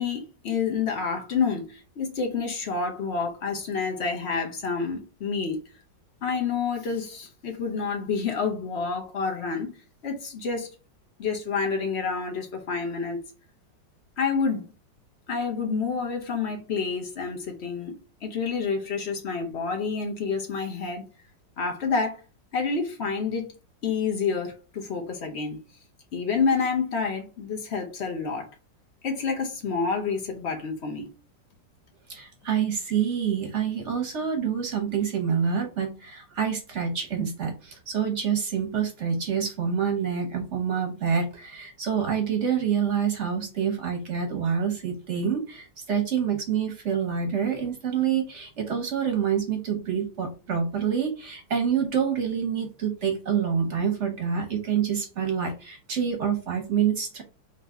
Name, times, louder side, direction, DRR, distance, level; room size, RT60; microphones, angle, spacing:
voice 1, 0.0-5.6 6.2-9.7 10.0-10.7 11.2-13.2 14.2-14.6 15.3-17.9 18.2-21.0 21.6-22.2 22.5-23.5 23.8-25.6 26.1-28.5 29.0-31.1, left 5 dB, 50° left, 0.8 m, -28 dB
voice 2, 32.1-57.2, right 7 dB, 50° right, 1.0 m, -27 dB
4.0 x 2.7 x 3.5 m
omnidirectional pair, 2.0 m